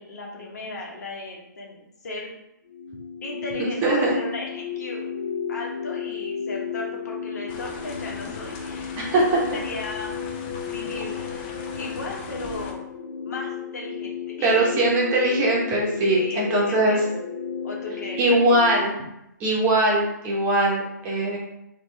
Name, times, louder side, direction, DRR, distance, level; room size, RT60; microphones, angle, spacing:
voice 1, 0.0-2.3 3.2-5.2 5.5-10.2 10.7-12.8 13.2-14.7 16.1-17.2 17.6-18.7, left 2 dB, 60° left, -2 dB, 1.2 m, -36 dB
sound 1, 2.7-18.8, left 7 dB, 80° left, 1.0 m, -33 dB
voice 2, 3.6-4.1 9.0-9.2 14.4-17.0 18.2-18.9 19.4-21.4, right 2 dB, 20° right, -4 dB, 0.9 m, -21 dB
sound 2, 7.5-12.7, left 4 dB, 30° left, 0.5 m, -40 dB
4.0 x 2.4 x 3.3 m, 0.84 s
hypercardioid pair, 145°, 10 cm